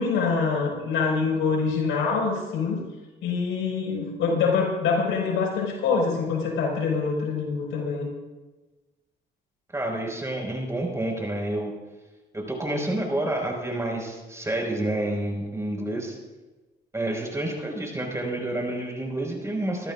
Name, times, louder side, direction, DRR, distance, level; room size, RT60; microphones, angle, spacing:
voice 1, 0.0-2.8 3.2-8.1, left 5 dB, 90° left, -1 dB, 5.1 m, -25 dB
voice 2, 9.7-11.7 12.3-16.2 16.9-19.9, right 1 dB, 15° right, 0 dB, 5.2 m, -29 dB
25.0 x 13.5 x 2.5 m, 1.2 s
cardioid pair, 90°, 20 cm